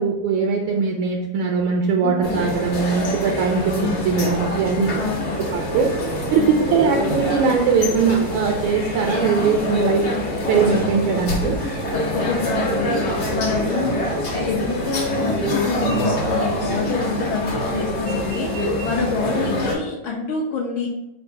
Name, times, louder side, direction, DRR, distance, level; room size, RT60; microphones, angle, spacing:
voice 1, 0.0-5.0 5.4-5.9 6.3-10.0 10.5-11.6, right 5 dB, 75° right, 1 dB, 1.3 m, -20 dB
voice 2, 2.0-2.3 4.9-5.4 6.4-6.6 12.1-20.9, left 4 dB, 75° left, -1 dB, 1.4 m, -27 dB
sound 1, 2.2-19.8, left 1 dB, 55° left, 1.4 m, -25 dB
4.3 x 2.4 x 4.6 m, 0.92 s
omnidirectional pair, 2.4 m